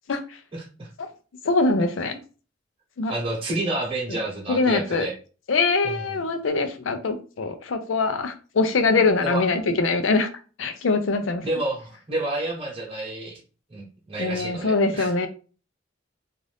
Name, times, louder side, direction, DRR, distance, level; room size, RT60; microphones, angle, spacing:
voice 1, 0.5-0.9 3.1-5.1 5.8-6.0 9.2-9.4 11.4-13.4 13.7-15.1, right 2 dB, 30° right, 1.0 m, -29 dB
voice 2, 1.4-2.2 3.0-3.1 4.1-4.2 4.5-5.1 5.5-10.3 10.6-11.5 14.2-15.3, left 3 dB, 75° left, 0.5 m, -23 dB
2.6 x 2.5 x 3.3 m
head